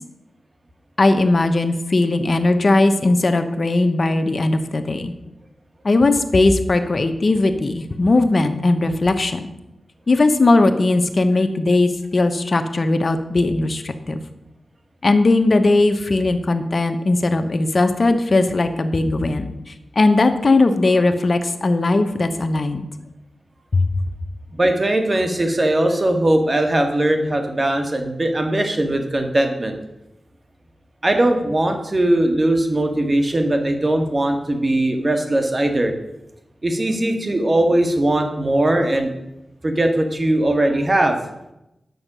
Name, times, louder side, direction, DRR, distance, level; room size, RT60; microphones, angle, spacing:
voice 1, 1.0-5.1 5.8-9.5 10.1-14.2 15.0-19.5 20.0-22.8 23.7-23.9, left 2 dB, 50° left, 7 dB, 1.0 m, -18 dB
voice 2, 24.5-29.8 31.0-35.9 36.6-39.1 39.6-41.2, right 1 dB, 40° right, 5 dB, 1.8 m, -19 dB
9.6 x 6.5 x 6.2 m, 0.90 s
cardioid pair, 60°, 0 cm